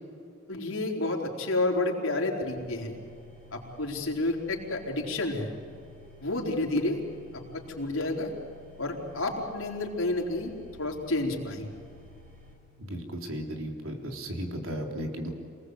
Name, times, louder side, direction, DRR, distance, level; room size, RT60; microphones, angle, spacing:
voice 1, 0.5-3.0 3.5-5.5 6.2-7.0 7.3-8.3 8.8-10.5 10.8-11.7, left 2 dB, 75° left, -1 dB, 4.3 m, -30 dB
sound 1, 2.4-12.5, left 2 dB, 40° right, 5.3 m, -54 dB
voice 2, 12.8-15.3, equal, 80° right, 2 dB, 3.8 m, -35 dB
27.5 x 20.0 x 8.1 m, 2.5 s
head